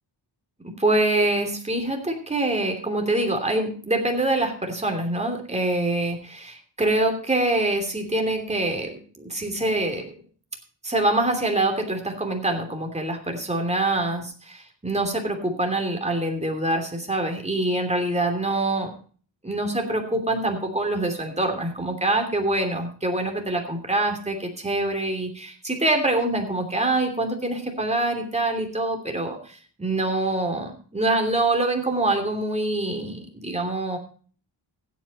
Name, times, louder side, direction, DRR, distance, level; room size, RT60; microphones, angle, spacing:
voice 1, 0.8-10.1 10.8-18.9 19.4-34.0, right 2 dB, 15° right, 3 dB, 3.0 m, -25 dB
16.0 x 8.6 x 4.2 m, 0.41 s
cardioid pair, 80°, 46 cm